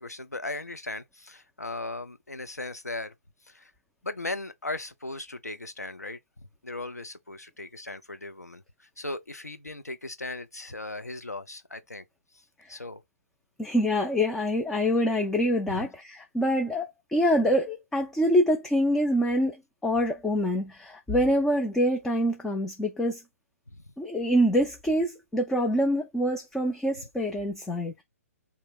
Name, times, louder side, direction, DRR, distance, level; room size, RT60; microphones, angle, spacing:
voice 1, 0.0-3.1 3.5-3.7 4.0-6.2 6.6-12.0 12.7-13.0 15.7-15.9 23.7-23.8, left 2 dB, 85° left, 0.7 m, -37 dB
voice 2, 13.6-19.6 19.8-23.2 24.0-28.0, equal, 5° left, 0.4 m, -25 dB
3.5 x 2.8 x 4.4 m
figure-of-eight pair, 130°, 8 cm